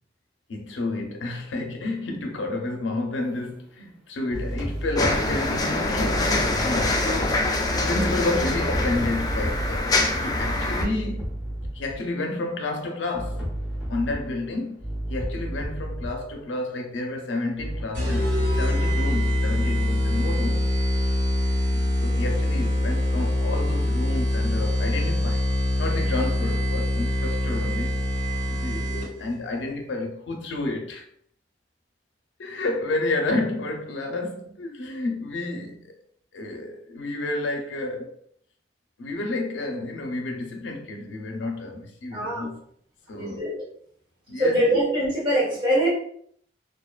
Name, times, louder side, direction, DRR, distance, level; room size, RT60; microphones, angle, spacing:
voice 1, 0.5-9.8 10.2-11.4 11.7-13.5 13.9-20.7 21.7-25.5 25.8-28.1 28.3-31.0 32.4-35.9 36.3-38.1 39.0-42.6 43.1-43.5 44.3-44.8, left 2 dB, 80° left, 0.5 m, -30 dB
sound 1, 3.2-3.5 4.3-7.8 8.7-12.0 13.1-16.4 17.6-17.8, equal, ahead, 0.9 m, -32 dB
sound 2, 5.0-10.8, left 2 dB, 20° left, 0.3 m, -24 dB
sound 3, 17.9-29.3, left 1 dB, 85° right, 1.5 m, -24 dB
voice 2, 42.1-42.5 43.2-43.6 44.4-45.9, equal, 25° right, 1.2 m, -23 dB
2.6 x 2.2 x 2.3 m
head